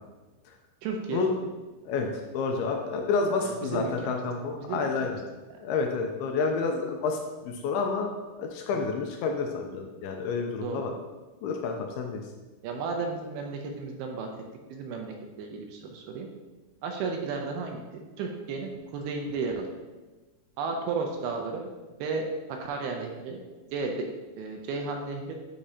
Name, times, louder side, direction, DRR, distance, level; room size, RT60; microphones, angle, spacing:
voice 1, 0.8-1.2 3.4-4.2 4.6-5.1 5.5-5.6 10.6-10.9 12.6-14.3 14.7-16.3 16.8-19.7 20.6-21.7 22.0-23.4 23.7-24.1 24.4-25.3, right 4 dB, 80° right, 2 dB, 2.4 m, -33 dB
voice 2, 2.3-5.2 5.6-8.1 8.4-10.9 11.4-12.2, left 4 dB, 80° left, 3 dB, 2.3 m, -29 dB
8.7 x 5.0 x 2.7 m, 1.2 s
omnidirectional pair, 4.7 m